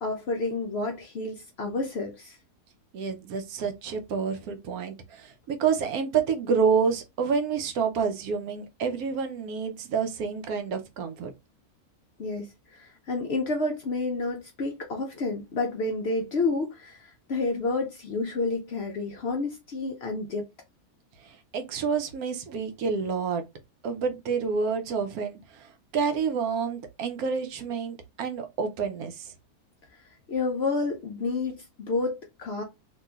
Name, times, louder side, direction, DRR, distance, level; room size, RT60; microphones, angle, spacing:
voice 1, 0.0-2.4 12.2-20.5 29.9-30.0 30.3-32.6, left 3 dB, 65° left, 0.7 m, -30 dB
voice 2, 2.9-11.3 21.2-23.4 23.8-29.3, right 6 dB, 75° right, 1.1 m, -28 dB
3.0 x 2.6 x 2.3 m
omnidirectional pair, 1.6 m